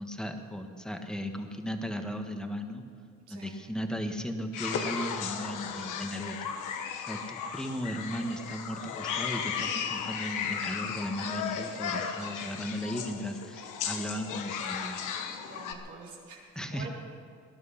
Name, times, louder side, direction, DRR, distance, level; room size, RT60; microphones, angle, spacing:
voice 1, 0.0-2.8 3.3-6.5 7.0-15.1 16.5-16.9, equal, ahead, 5 dB, 1.5 m, -36 dB
voice 2, 3.3-3.6 11.6-12.6 15.4-16.4 16.7-16.9, right 4 dB, 85° right, -3 dB, 3.7 m, -48 dB
sound 1, 4.5-15.7, left 7 dB, 90° left, 1.2 m, -35 dB
19.5 x 11.0 x 5.9 m, 2.3 s
cardioid pair, 90°, 30 cm